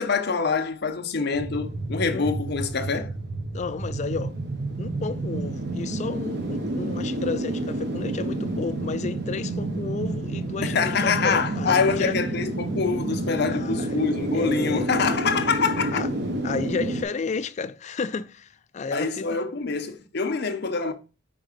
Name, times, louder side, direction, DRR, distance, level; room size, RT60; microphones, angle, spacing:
voice 1, 0.0-3.1 10.6-16.0 18.9-20.9, left 5 dB, 60° left, 0.8 m, -25 dB
sound 1, 1.3-17.0, right 2 dB, 65° right, 0.9 m, -29 dB
voice 2, 3.5-4.4 4.8-12.2 13.5-14.0 14.3-15.2 15.9-16.1 16.4-19.4, left 4 dB, 40° left, 0.4 m, -32 dB
5.2 x 3.7 x 5.0 m
head